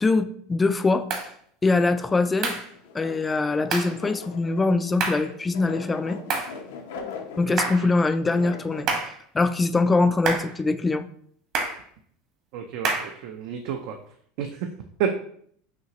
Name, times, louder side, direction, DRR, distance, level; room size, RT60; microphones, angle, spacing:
voice 1, 0.0-1.1 1.6-2.6 2.9-6.2 7.4-8.9 9.3-11.1, left 3 dB, 15° left, 11 dB, 0.3 m, -23 dB
sound 1, 1.1-1.3 2.4-2.7 3.7-4.0 5.0-5.3 6.3-6.6 7.6-7.9 8.9-9.2 10.3-10.6 11.5-11.8 12.8-13.2, right 4 dB, 45° right, 1.2 m, -27 dB
sound 2, 2.0-8.9, left 5 dB, 90° left, 0.8 m, -41 dB
voice 2, 12.5-14.0 14.4-14.7 15.0-15.1, right 8 dB, 65° right, 4 dB, 0.5 m, -30 dB
5.7 x 2.9 x 2.9 m, 0.62 s
supercardioid pair, 130°, 0 cm